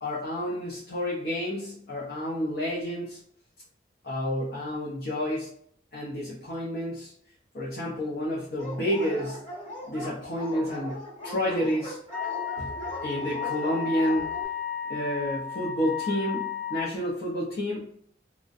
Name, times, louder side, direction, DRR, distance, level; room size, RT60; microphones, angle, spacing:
voice 1, 0.0-3.2 4.0-5.5 5.9-7.1 7.5-9.4 9.9-12.0 12.6-12.7 13.0-14.3 14.9-17.9, equal, 55° left, -4 dB, 0.5 m, -30 dB
Dog, 8.6-14.5, left 1 dB, 35° left, 1.1 m, -39 dB
Wind instrument woodwind instrument, 12.1-16.9, left 8 dB, 5° left, 0.4 m, -33 dB
2.5 x 2.1 x 2.4 m, 0.64 s
head